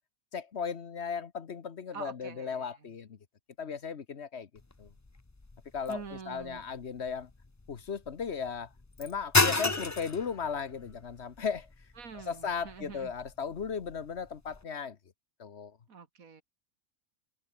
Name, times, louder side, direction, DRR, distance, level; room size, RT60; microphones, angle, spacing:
voice 1, 0.3-3.2 3.6-4.5 4.8-4.9 5.7-6.0 6.3-7.3 7.7-8.7 9.0-11.7 12.3-15.0 15.4-15.7, left 6 dB, 55° left, 1.4 m, -36 dB
voice 2, 1.9-3.0 5.9-6.6 12.0-13.1 15.9-16.4, right 5 dB, 85° right, 2.4 m, -45 dB
sound 1, 4.6-14.6, left 2 dB, 15° left, 0.7 m, -34 dB
omnidirectional pair, 1.4 m